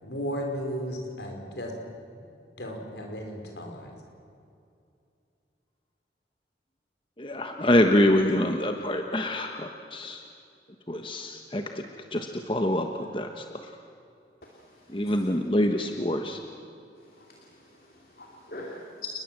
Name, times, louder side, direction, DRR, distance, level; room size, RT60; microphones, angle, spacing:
voice 1, 0.0-1.7 2.6-4.0, equal, 75° left, 2 dB, 5.1 m, -34 dB
voice 2, 7.2-10.2 10.9-11.8 12.1-13.3 14.9-16.4, left 1 dB, 30° left, 4 dB, 1.2 m, -25 dB
voice 3, 14.4-15.2 17.0-19.1, left 3 dB, 55° left, -1 dB, 3.0 m, -44 dB
29.5 x 20.5 x 7.7 m, 2.5 s
head